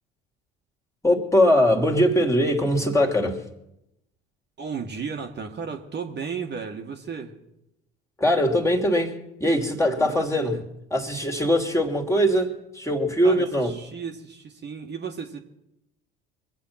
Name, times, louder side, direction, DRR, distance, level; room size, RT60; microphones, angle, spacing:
voice 1, 1.0-3.4 8.2-9.1 9.4-10.6 10.9-13.7, equal, 10° left, 1 dB, 2.6 m, -21 dB
voice 2, 4.6-7.4 9.9-10.6 13.2-15.4, right 6 dB, 35° right, 2 dB, 1.6 m, -34 dB
23.5 x 8.1 x 5.8 m, 0.86 s
hypercardioid pair, 65°, 29 cm